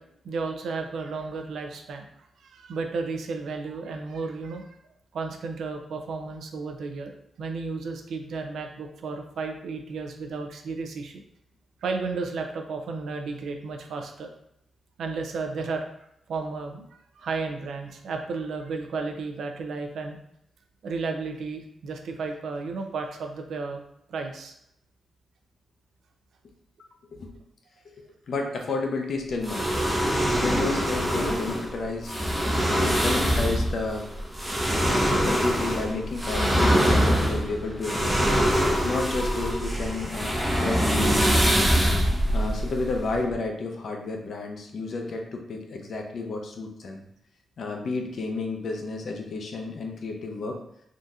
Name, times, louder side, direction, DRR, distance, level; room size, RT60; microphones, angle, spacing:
voice 1, 0.0-2.0 2.4-4.6 5.1-11.2 11.8-14.3 15.0-15.8 16.3-16.9 17.2-20.2 20.8-23.8 24.1-24.5, right 4 dB, 70° right, 4 dB, 0.4 m, -33 dB
voice 2, 27.8-30.0 30.3-32.1 32.6-34.1 34.8-38.3 38.8-41.8 42.3-47.0 47.6-50.6, left 3 dB, 55° left, 2 dB, 0.5 m, -31 dB
sound 1, 29.4-43.3, equal, 5° right, 0.5 m, -24 dB
3.6 x 2.7 x 2.4 m, 0.76 s
wide cardioid pair, 170°, 0 cm